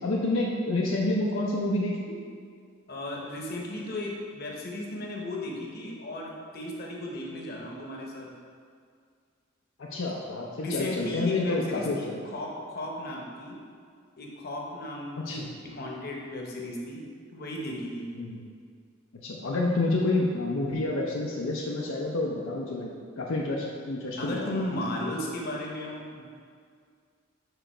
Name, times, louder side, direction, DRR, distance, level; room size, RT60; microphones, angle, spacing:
voice 1, 0.0-2.2 9.8-12.2 15.3-15.5 18.2-18.4 19.2-24.5, left 2 dB, 75° left, -3 dB, 0.6 m, -29 dB
voice 2, 2.9-8.3 9.9-10.1 10.6-13.6 14.2-17.0 17.3-18.1 24.2-26.2, left 1 dB, 50° left, -1 dB, 1.0 m, -35 dB
5.0 x 4.9 x 4.4 m, 2.1 s
head